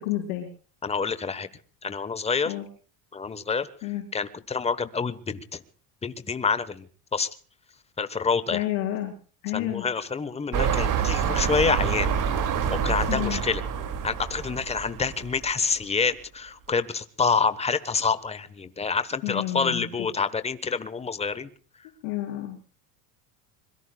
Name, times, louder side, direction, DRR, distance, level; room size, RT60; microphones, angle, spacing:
voice 1, 0.0-0.5 2.5-2.7 3.8-4.0 8.5-9.1 9.4-9.9 13.1-13.4 19.2-19.8 22.0-22.6, left 14 dB, 70° left, -1 dB, 4.2 m, -30 dB
voice 2, 0.8-1.5 1.8-2.5 3.1-3.7 4.1-5.6 6.0-6.8 7.1-7.3 8.0-8.6 9.5-12.1 12.7-13.6 14.0-21.5, left 5 dB, 15° left, 13 dB, 1.2 m, -27 dB
sound 1, 10.5-15.5 16.1-16.2, right 7 dB, 40° right, 2.6 m, -27 dB
26.0 x 22.0 x 2.3 m, 0.41 s
cardioid pair, 140°, 48 cm